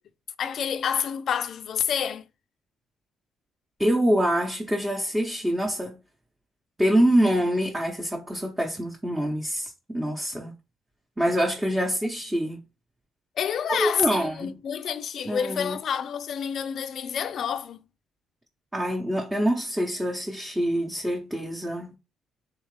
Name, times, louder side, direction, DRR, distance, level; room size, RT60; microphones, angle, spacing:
voice 1, 0.4-2.3 13.4-17.8, left 8 dB, 55° left, 0.4 m, -28 dB
voice 2, 3.8-6.0 6.8-10.5 11.2-12.7 13.7-14.6 15.3-15.8 18.7-22.0, equal, 10° right, 0.8 m, -25 dB
3.6 x 3.2 x 3.2 m
cardioid pair, 105°, 0 cm